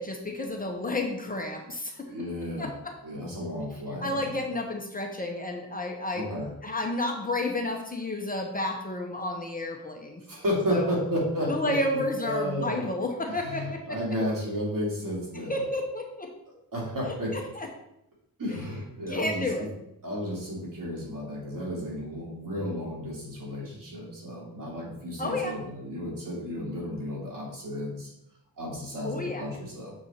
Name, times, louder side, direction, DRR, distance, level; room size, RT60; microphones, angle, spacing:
voice 1, 0.0-2.1 2.6-2.7 4.0-6.3 6.6-10.2 10.7-10.9 11.5-14.0 15.5-16.3 17.3-17.7 19.1-19.6 25.2-25.6 29.0-29.5, left 2 dB, 25° left, 2 dB, 0.9 m, -31 dB
voice 2, 2.0-2.7 3.0-4.4 6.1-6.5 10.3-11.7 12.2-12.8 13.3-15.6 16.7-17.4 18.4-19.7 20.0-28.1 28.6-29.9, equal, 65° right, -4 dB, 2.6 m, -32 dB
6.6 x 4.3 x 4.3 m, 0.81 s
wide cardioid pair, 130°, 35 cm